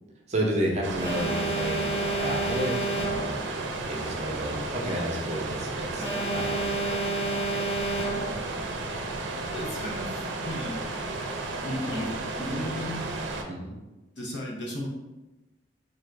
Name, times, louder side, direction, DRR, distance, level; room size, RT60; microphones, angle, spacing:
voice 1, 0.3-3.4 3.9-6.8 13.5-13.7, right 1 dB, 40° right, -1 dB, 0.6 m, -31 dB
sound 1, 0.8-13.4, right 2 dB, 90° right, 0.5 m, -33 dB
Alarm, 1.0-3.5 6.0-8.5, right 2 dB, 10° left, 0.7 m, -30 dB
voice 2, 9.5-10.8 11.6-12.1 12.4-13.0 14.2-14.9, left 1 dB, 70° left, -2 dB, 0.9 m, -34 dB
3.9 x 2.5 x 3.2 m, 1.1 s
head